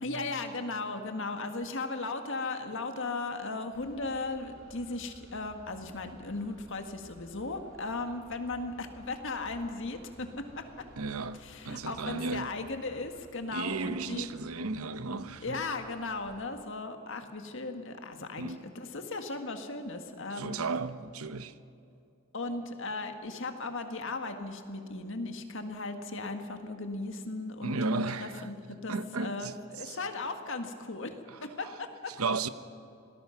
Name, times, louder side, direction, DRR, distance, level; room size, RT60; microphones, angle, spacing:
voice 1, 0.0-10.9 11.4-14.3 15.2-20.6 22.3-31.1 31.4-32.1, left 3 dB, 60° left, 1.8 m, -37 dB
sound 1, 3.7-16.4, right 1 dB, 65° right, 3.5 m, -57 dB
voice 2, 11.0-12.5 13.5-15.6 18.4-18.6 20.4-21.5 27.6-28.5 28.9-29.5 29.8-30.0 32.2-32.5, right 3 dB, 90° right, 0.9 m, -34 dB
26.0 x 19.0 x 5.9 m
head